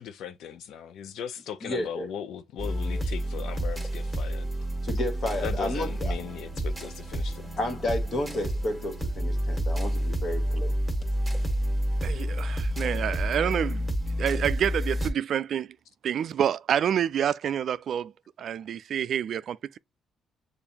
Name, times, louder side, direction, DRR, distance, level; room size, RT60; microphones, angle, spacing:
voice 1, 0.0-4.5 5.4-7.5, left 8 dB, 80° left, 0.5 m, -38 dB
voice 2, 1.6-2.1 4.8-6.2 7.6-10.7, left 1 dB, 50° left, 1.7 m, -31 dB
sound 1, 2.6-15.1, equal, 5° left, 1.7 m, -29 dB
voice 3, 12.0-13.9 14.2-15.7 16.0-18.1 18.4-19.8, right 9 dB, 65° right, 0.4 m, -28 dB
6.8 x 2.6 x 2.8 m
cardioid pair, 90°, 0 cm